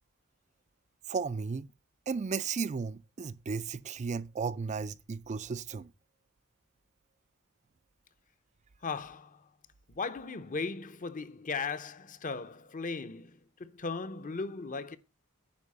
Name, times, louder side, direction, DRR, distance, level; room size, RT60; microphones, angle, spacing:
voice 1, 1.1-1.7 2.1-5.9, right 5 dB, 30° right, 0.4 m, -34 dB
voice 2, 8.8-9.4 9.9-15.0, left 4 dB, 35° left, 0.7 m, -37 dB
9.7 x 4.8 x 5.4 m
head